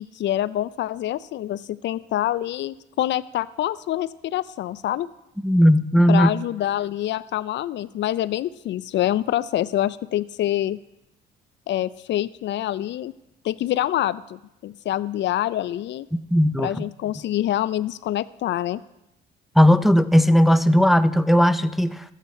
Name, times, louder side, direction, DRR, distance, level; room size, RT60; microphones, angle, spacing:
voice 1, 0.0-5.1 6.1-10.8 11.7-13.1 13.4-16.1 16.6-18.8, left 13 dB, 65° left, 0.4 m, -26 dB
voice 2, 5.4-6.3 16.3-16.7 19.6-22.0, equal, ahead, 0.4 m, -17 dB
13.5 x 8.3 x 4.2 m
cardioid pair, 90°, 20 cm